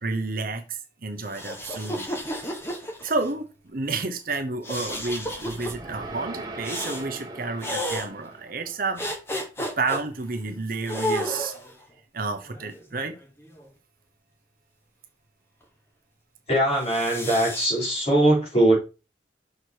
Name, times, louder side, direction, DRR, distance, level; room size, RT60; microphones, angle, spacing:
voice 1, 0.0-2.2 3.0-9.0 9.6-11.5 12.1-13.1, right 3 dB, 50° right, 6 dB, 1.0 m, -30 dB
sound 1, 1.2-3.3 4.6-5.7 6.6-7.1 7.6-8.1 9.0-10.0 10.9-11.7 12.5-13.7 16.7-17.7, equal, 15° left, 1.4 m, -32 dB
terror scary suspiro whisper, 4.9-9.1, right 2 dB, 25° right, 1.4 m, -40 dB
voice 2, 16.5-18.8, right 1 dB, 35° left, -3 dB, 3.6 m, -21 dB
6.5 x 4.8 x 4.7 m, 0.31 s
head